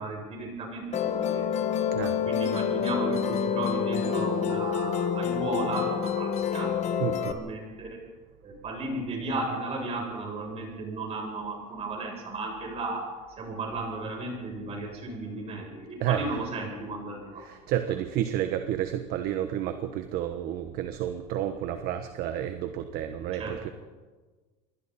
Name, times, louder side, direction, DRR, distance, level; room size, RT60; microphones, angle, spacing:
voice 1, 0.0-1.5 2.2-8.0 8.4-13.1 13.4-17.4 23.3-23.6, right 2 dB, 30° right, 0 dB, 7.8 m, -34 dB
Musical instrument, 0.9-7.3, left 7 dB, 35° left, 1.5 m, -28 dB
voice 2, 7.0-7.4 16.0-16.3 17.4-23.7, right 11 dB, 50° right, 8 dB, 1.3 m, -30 dB
28.0 x 22.5 x 4.3 m, 1.3 s
supercardioid pair, 140°, 19 cm